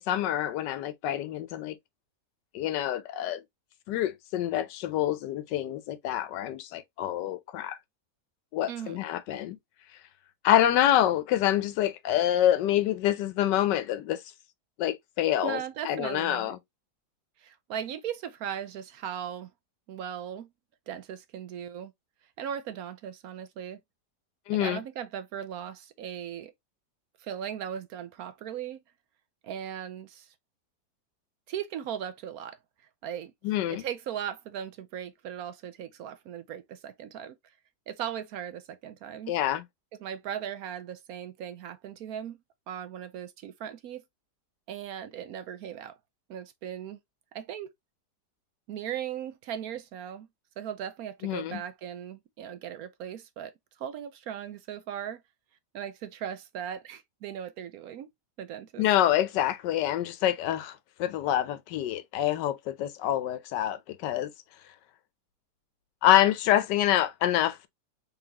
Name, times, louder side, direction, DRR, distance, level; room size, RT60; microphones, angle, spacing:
voice 1, 0.0-1.8 2.5-3.4 3.9-7.8 8.5-9.6 10.4-14.2 14.8-16.6 24.5-24.8 33.4-33.8 39.3-39.6 51.2-51.6 58.8-64.3 66.0-67.7, left 12 dB, 90° left, 1.3 m, -26 dB
voice 2, 8.7-9.0 15.4-16.5 17.4-19.5 19.9-20.5 20.9-21.9 22.4-23.8 24.6-26.5 27.2-28.8 29.4-30.3 31.5-32.6 33.0-33.3 33.7-37.3 37.9-39.3 40.0-42.4 42.7-44.0 44.7-46.0 46.3-47.0 47.3-47.7 48.7-50.3 50.6-53.5 53.8-55.2 55.7-58.1 58.4-58.8, right 9 dB, 70° right, 1.0 m, -38 dB
4.0 x 3.8 x 2.8 m
omnidirectional pair, 1.8 m